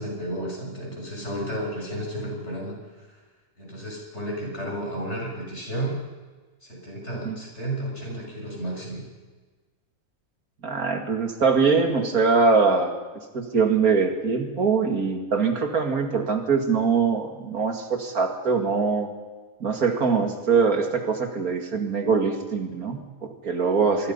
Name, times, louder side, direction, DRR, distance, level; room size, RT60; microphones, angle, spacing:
voice 1, 0.0-3.2 3.6-6.0 6.6-9.0, right 1 dB, 50° left, -1 dB, 7.2 m, -32 dB
voice 2, 10.6-12.9 13.3-19.1 19.6-24.1, right 5 dB, 80° right, 5 dB, 2.8 m, -23 dB
26.0 x 22.0 x 5.6 m, 1.3 s
omnidirectional pair, 1.5 m